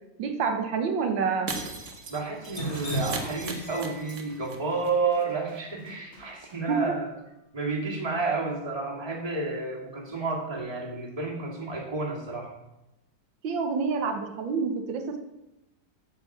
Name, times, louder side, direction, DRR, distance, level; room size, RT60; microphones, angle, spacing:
voice 1, 0.2-1.5 6.7-7.0 13.4-15.2, right 5 dB, 85° right, 5 dB, 1.8 m, -27 dB
Shatter, 1.5-4.6 4.8-4.9 5.2-5.3, right 3 dB, 45° right, 1.5 m, -37 dB
voice 2, 2.1-7.1 7.5-12.5, right 3 dB, 20° right, -2 dB, 2.2 m, -31 dB
Drip, 2.4-6.6, right 1 dB, 50° left, 2.5 m, -36 dB
sound 1, 3.4-5.3, equal, 80° left, 1.9 m, -50 dB
9.5 x 6.6 x 7.2 m, 0.95 s
omnidirectional pair, 2.0 m